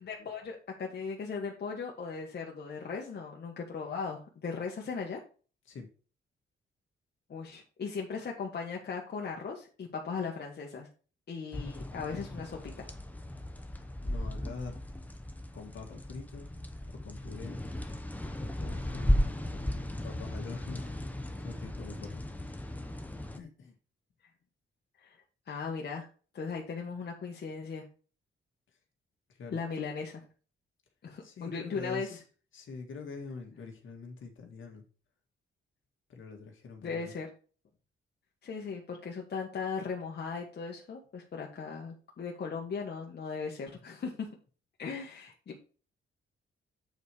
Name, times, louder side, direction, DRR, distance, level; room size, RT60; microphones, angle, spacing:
voice 1, 0.0-5.2 7.3-10.9 11.3-12.9 25.0-25.2 25.5-26.1 26.3-27.8 29.5-30.2 31.0-32.1 36.8-37.3 38.4-44.3 44.8-45.6, left 5 dB, 55° left, -1 dB, 1.5 m, -38 dB
sound 1, 11.5-23.4, left 1 dB, 5° left, 0.9 m, -35 dB
voice 2, 13.6-14.8 15.5-16.5 16.9-17.6 18.4-19.4 20.0-20.9 21.4-22.6 23.4-23.8 29.3-29.6 31.2-32.2 32.5-34.8 36.1-37.1, left 4 dB, 70° left, 3 dB, 2.0 m, -45 dB
Guitar, 18.9-22.2, left 5 dB, 90° left, 1.3 m, -57 dB
8.1 x 4.3 x 4.8 m, 0.37 s
cardioid pair, 120°, 21 cm